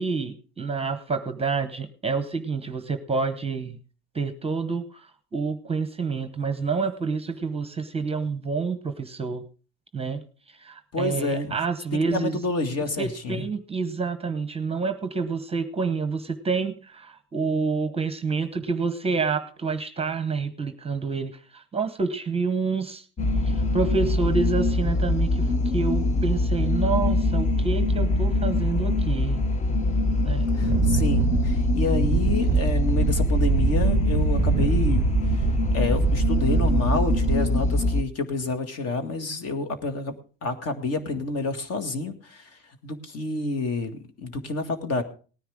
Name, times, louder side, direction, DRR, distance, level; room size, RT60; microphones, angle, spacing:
voice 1, 0.0-3.8 4.1-9.4 9.9-10.2 10.5-12.4 13.0-23.1 23.4-29.4 30.2-30.5, right 4 dB, 15° right, 10 dB, 0.9 m, -28 dB
voice 2, 10.9-11.6 11.9-13.4 30.6-35.1 35.7-40.1 40.4-42.5 42.8-45.0, left 2 dB, 45° left, 7 dB, 2.1 m, -29 dB
sound 1, 23.2-38.0, left 2 dB, 20° left, 0.7 m, -23 dB
Wind, 30.6-37.8, right 13 dB, 35° right, 0.5 m, -26 dB
18.5 x 10.0 x 3.7 m, 0.37 s
cardioid pair, 125°, 34 cm